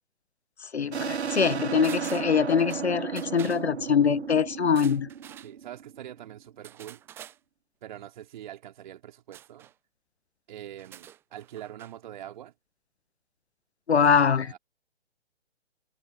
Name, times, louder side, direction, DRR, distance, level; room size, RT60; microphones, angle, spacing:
voice 1, 0.6-5.1 13.9-14.5, left 6 dB, 70° left, 1.3 m, -23 dB
sound 1, 0.9-6.2, right 7 dB, 70° right, 0.8 m, -34 dB
sound 2, 1.8-2.9 3.2-3.6 4.6-5.5 6.6-7.4 9.3-9.7 10.7-11.9 12.2-12.3, right 11 dB, 5° right, 0.6 m, -47 dB
voice 2, 5.4-7.0 7.8-9.7 10.5-12.5 13.9-14.6, right 11 dB, 45° right, 3.9 m, -44 dB
figure-of-eight pair, 130°, 34 cm